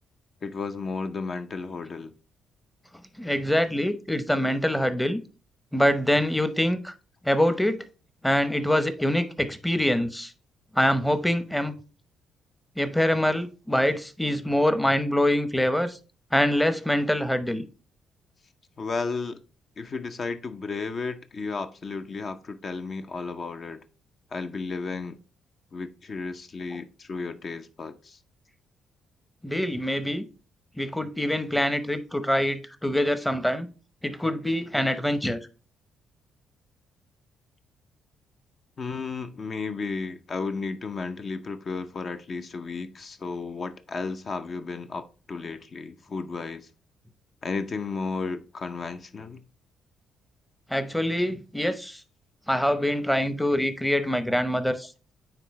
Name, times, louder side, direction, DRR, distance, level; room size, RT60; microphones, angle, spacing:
voice 1, 0.4-2.1 18.8-19.4 19.8-23.8 24.3-25.2 25.7-28.2 38.8-46.7 47.4-49.4, left 4 dB, 45° left, 0.6 m, -33 dB
voice 2, 3.2-5.2 5.7-6.9 7.2-7.8 8.2-10.3 10.7-11.8 12.8-16.0 16.3-17.6 29.4-30.2 30.8-33.7 34.0-35.4 50.7-52.0 52.5-54.9, left 1 dB, 5° left, 0.7 m, -24 dB
9.2 x 3.8 x 3.1 m
cardioid pair, 90°, 0 cm